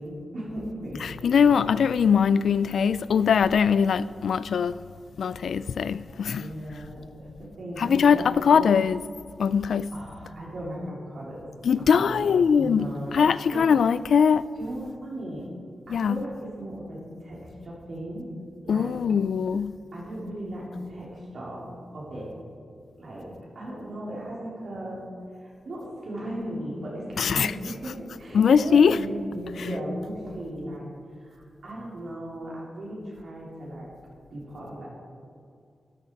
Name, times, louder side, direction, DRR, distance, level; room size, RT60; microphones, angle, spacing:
voice 1, 0.0-1.5 6.3-8.5 9.5-9.6 9.9-11.5 11.8-12.2 12.6-13.7 14.6-15.5 15.9-18.3 18.6-19.0 19.9-22.3 23.0-25.0 25.4-30.9 31.2-33.9 34.3-34.9, right 1 dB, 55° right, 3.6 m, -36 dB
voice 2, 1.0-4.8 5.2-6.5 7.8-9.0 9.4-9.9 11.6-12.9 13.1-14.4 15.9-16.2 18.7-19.8 27.2-27.5 28.3-29.0, left 6 dB, 75° left, 0.3 m, -21 dB
13.0 x 10.5 x 4.7 m
wide cardioid pair, 165°, 0 cm